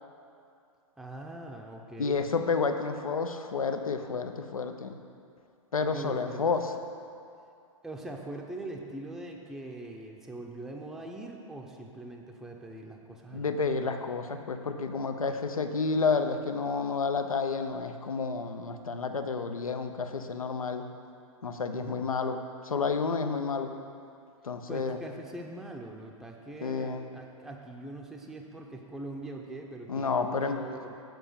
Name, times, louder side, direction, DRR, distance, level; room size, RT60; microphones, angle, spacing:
voice 1, 1.0-2.3 5.8-6.7 7.8-13.5 21.7-22.2 24.7-31.0, right 2 dB, ahead, 1 dB, 0.5 m, -42 dB
voice 2, 2.0-5.0 5.7-6.6 13.3-20.8 21.4-22.4 22.6-23.7 24.4-25.0 26.6-27.0 29.9-30.6, left 4 dB, 90° left, 7 dB, 0.6 m, -30 dB
7.9 x 4.4 x 6.7 m, 2.5 s
hypercardioid pair, 115°, 17 cm